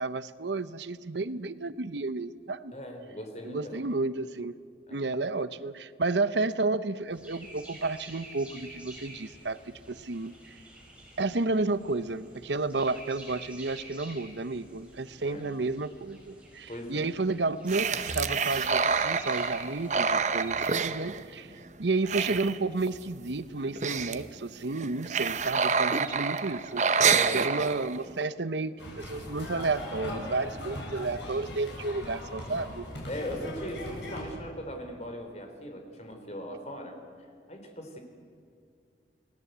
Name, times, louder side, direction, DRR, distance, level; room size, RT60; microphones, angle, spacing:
voice 1, 0.0-2.8 3.4-4.5 4.9-10.6 11.2-21.5 21.8-27.1 27.3-32.8, right 3 dB, 80° right, 14 dB, 0.9 m, -31 dB
voice 2, 2.7-3.9 4.9-5.1 15.2-15.5 16.7-17.1 27.0-27.5 33.1-38.0, equal, 35° left, 4 dB, 4.1 m, -39 dB
sound 1, 7.1-20.7, right 1 dB, 5° right, 6.2 m, -49 dB
sound 2, 17.7-21.7 21.9-23.0 23.3-23.4 23.6-24.3 24.7-28.1, right 5 dB, 40° right, 0.9 m, -28 dB
sound 3, 28.8-34.3, left 1 dB, 80° left, 7.9 m, -39 dB
29.5 x 19.5 x 8.2 m, 2.3 s
head